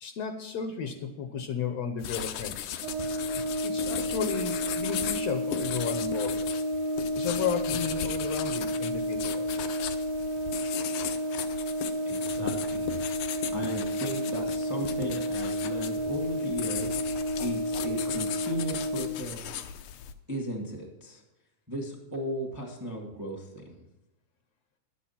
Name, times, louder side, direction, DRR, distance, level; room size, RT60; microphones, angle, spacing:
voice 1, 0.0-2.6 3.0-6.4 7.2-9.5, left 7 dB, 70° left, 6 dB, 1.7 m, -34 dB
sound 1, 2.0-20.1, left 10 dB, 85° left, 2.2 m, -37 dB
Brass instrument, 2.8-19.2, equal, 80° right, 1.4 m, -31 dB
voice 2, 12.1-13.0 13.3-17.0 17.4-19.5 20.3-21.2 21.7-23.8, equal, 10° right, 1 dB, 1.0 m, -36 dB
11.5 x 8.5 x 5.8 m, 1.0 s
omnidirectional pair, 3.5 m